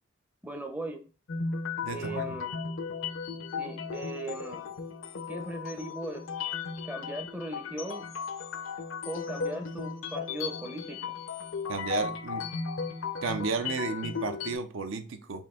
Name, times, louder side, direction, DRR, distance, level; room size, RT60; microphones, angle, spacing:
voice 1, 0.4-1.0 1.9-2.5 3.6-4.6 5.3-6.2 6.8-8.1 9.1-11.2, right 2 dB, 10° right, 4 dB, 0.5 m, -38 dB
sound 1, 1.3-14.6, left 5 dB, 70° left, 0.5 m, -36 dB
voice 2, 1.8-2.4 11.7-12.5 13.2-15.5, right 4 dB, 70° right, 8 dB, 0.5 m, -33 dB
4.3 x 2.7 x 3.6 m, 0.35 s
head